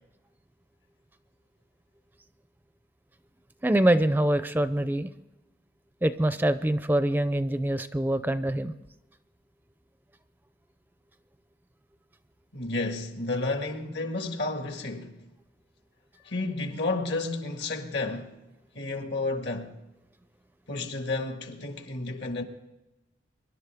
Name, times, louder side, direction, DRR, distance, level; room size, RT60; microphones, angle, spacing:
voice 1, 3.6-5.1 6.0-8.7, right 1 dB, 10° right, 0.4 m, -24 dB
voice 2, 12.5-15.2 16.3-18.4 18.7-19.7 20.7-22.4, left 2 dB, 70° left, 1.9 m, -31 dB
24.0 x 11.5 x 3.5 m
head